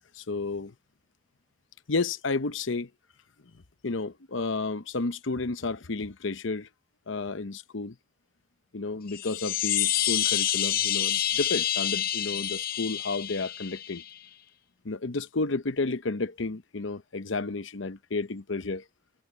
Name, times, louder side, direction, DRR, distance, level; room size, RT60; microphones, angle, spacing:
voice 1, 0.2-0.7 1.9-2.9 3.8-6.7 7.1-8.0 8.7-14.0 14.8-18.8, left 3 dB, 70° left, 0.9 m, -31 dB
sound 1, 9.1-14.1, left 11 dB, 45° left, 0.5 m, -28 dB
head